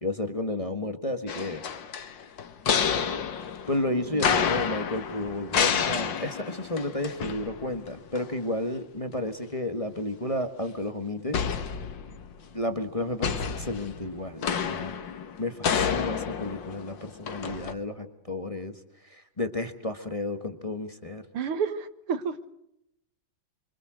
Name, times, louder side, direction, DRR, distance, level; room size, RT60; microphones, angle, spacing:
voice 1, 0.0-1.6 3.7-11.4 12.5-15.1 15.4-18.8 19.0-21.2, left 1 dB, 15° left, 7 dB, 1.5 m, -32 dB
sound 1, 1.3-7.9 8.1-8.3 11.3-12.4 13.2-17.7, left 7 dB, 60° left, 2.0 m, -29 dB
voice 2, 21.3-22.5, right 6 dB, 80° right, 11 dB, 2.3 m, -30 dB
27.0 x 25.0 x 6.4 m, 0.82 s
omnidirectional pair, 2.4 m